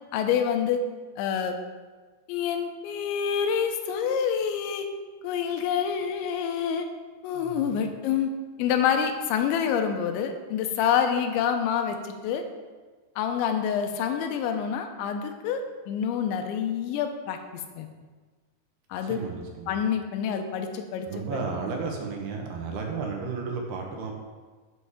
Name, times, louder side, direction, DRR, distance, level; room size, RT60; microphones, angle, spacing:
voice 1, 0.1-0.8 1.2-1.6 2.3-4.9 5.2-6.9 7.2-8.3 8.6-12.4 13.2-17.9 18.9-19.2 19.7-21.1, left 8 dB, 85° left, 6 dB, 3.1 m, -27 dB
voice 2, 7.3-7.8 19.0-19.7 21.1-24.1, right 4 dB, 70° right, 1 dB, 2.9 m, -33 dB
8.1 x 7.9 x 4.8 m, 1.4 s
omnidirectional pair, 5.2 m